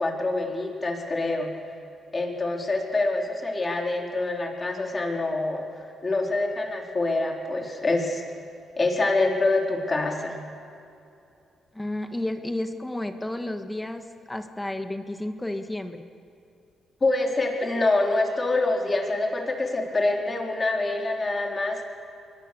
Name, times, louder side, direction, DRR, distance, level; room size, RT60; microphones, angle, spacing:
voice 1, 0.0-1.5 2.1-5.7 6.0-8.2 8.8-10.4 17.0-21.9, left 2 dB, 30° left, 1 dB, 4.0 m, -25 dB
voice 2, 11.7-16.0, left 1 dB, 10° left, 7 dB, 1.6 m, -32 dB
25.0 x 21.5 x 6.8 m, 2.6 s
cardioid pair, 75°, 0 cm